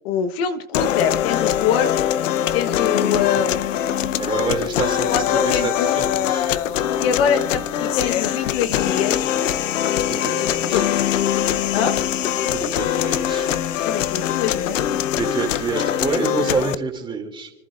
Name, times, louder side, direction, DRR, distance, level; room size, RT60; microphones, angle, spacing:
voice 1, 0.0-2.1 2.5-3.7 5.1-5.9 7.0-9.3 10.4-10.9 11.7-11.9 13.8-15.5, left 7 dB, 50° left, 9 dB, 1.1 m, -24 dB
sound 1, 0.7-16.7, left 10 dB, 70° left, 0.8 m, -22 dB
voice 2, 4.2-5.2 5.6-6.5 10.0-10.8 12.5-13.5 15.2-17.5, right 5 dB, 10° right, 3 dB, 2.5 m, -27 dB
29.5 x 11.0 x 2.5 m, 0.91 s
hypercardioid pair, 135°, 39 cm